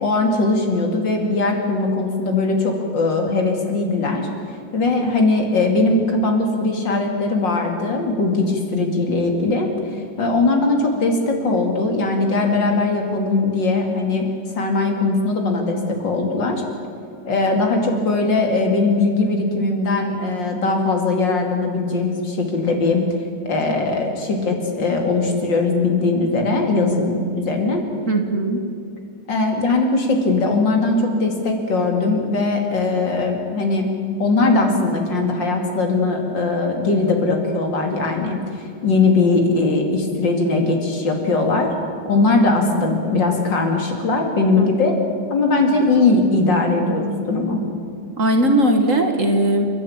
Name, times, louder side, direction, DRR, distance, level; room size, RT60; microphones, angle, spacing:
voice 1, 0.0-4.3 4.7-14.3 14.6-16.6 17.3-23.0 23.5-27.8 29.3-33.9 34.2-41.7 42.0-45.0 45.3-47.6, left 3 dB, 70° left, 2 dB, 3.3 m, -20 dB
voice 2, 28.1-28.6 44.6-44.8 48.2-49.7, right 1 dB, 45° right, 5 dB, 2.0 m, -18 dB
28.5 x 12.0 x 8.8 m, 2.4 s
omnidirectional pair, 2.1 m